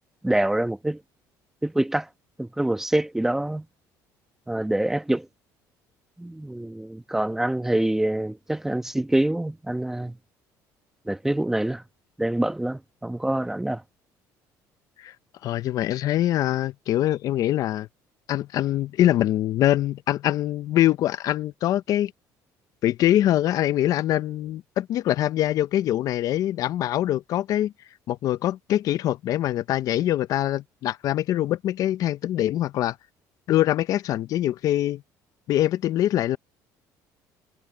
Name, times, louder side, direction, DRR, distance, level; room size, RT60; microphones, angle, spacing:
voice 1, 0.2-1.0 1.6-2.1 2.4-3.6 4.5-5.3 6.2-10.2 11.1-11.8 12.2-13.8, right 1 dB, 5° right, 1.0 m, -25 dB
voice 2, 15.4-17.9 18.3-22.1 22.8-27.7 28.1-33.0 33.5-35.0 35.5-36.4, left 13 dB, 55° left, 0.6 m, -23 dB
cardioid pair, 145°, 7 cm